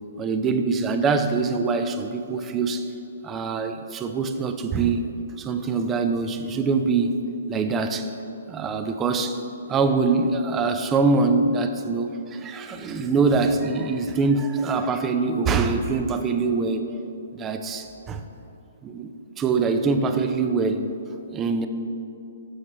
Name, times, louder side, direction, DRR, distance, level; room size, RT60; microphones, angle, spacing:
voice 1, 0.0-2.9 3.2-5.1 5.4-7.2 7.5-8.1 8.5-9.4 9.7-17.0 17.3-18.2 18.8-19.1 19.4-20.9 21.3-21.7, right 4 dB, 20° right, 8 dB, 0.4 m, -24 dB
7.2 x 6.4 x 4.3 m, 2.8 s
figure-of-eight pair, 130°, 0 cm